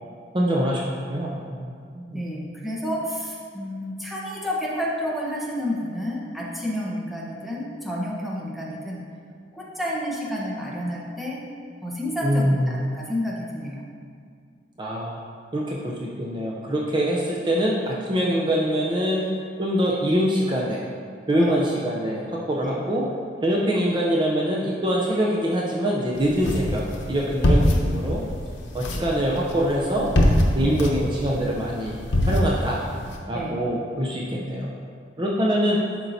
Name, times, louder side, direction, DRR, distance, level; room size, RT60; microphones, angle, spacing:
voice 1, 0.3-2.2 12.2-12.8 14.8-15.2 15.5-19.2 19.6-20.8 21.3-23.0 23.4-28.2 28.7-30.1 30.5-32.0 32.3-32.8 33.3-34.7 35.2-35.8, equal, 25° right, -4 dB, 0.6 m, -24 dB
voice 2, 2.1-9.0 9.5-11.4 11.8-13.9 21.3-21.6 22.6-22.8 30.6-30.9 33.3-33.6, equal, ahead, -4 dB, 0.8 m, -30 dB
sound 1, 26.2-33.2, left 1 dB, 85° left, 0.8 m, -24 dB
11.0 x 4.4 x 2.7 m, 2.2 s
head